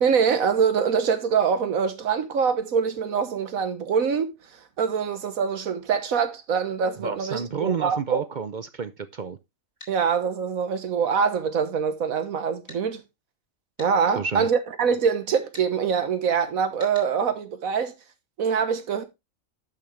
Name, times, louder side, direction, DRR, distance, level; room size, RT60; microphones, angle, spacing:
voice 1, 0.0-8.2 9.9-13.0 13.8-17.9 18.4-19.0, right 6 dB, 85° right, 1.6 m, -24 dB
voice 2, 7.0-9.4 14.2-14.5, right 6 dB, 50° right, 0.6 m, -30 dB
sound 1, 9.8-10.0 12.7-12.8 13.8-13.9 15.5-15.7 16.8-17.1, left 2 dB, 40° left, 3.2 m, -44 dB
10.5 x 6.0 x 3.2 m
omnidirectional pair, 1.4 m